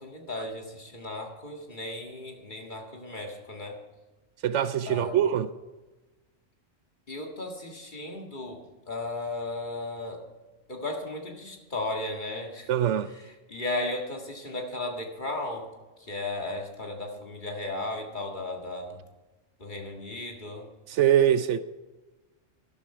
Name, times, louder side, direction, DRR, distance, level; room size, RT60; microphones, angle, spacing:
voice 1, 0.0-3.8 4.9-5.3 7.1-8.6 8.9-10.3 10.7-12.7 13.1-15.7 16.0-19.0 19.6-20.7, left 2 dB, 40° left, 2.0 m, -35 dB
voice 2, 4.4-5.5 12.7-13.1 20.9-21.6, right 10 dB, 70° right, 0.9 m, -23 dB
12.5 x 12.0 x 4.8 m
omnidirectional pair, 1.3 m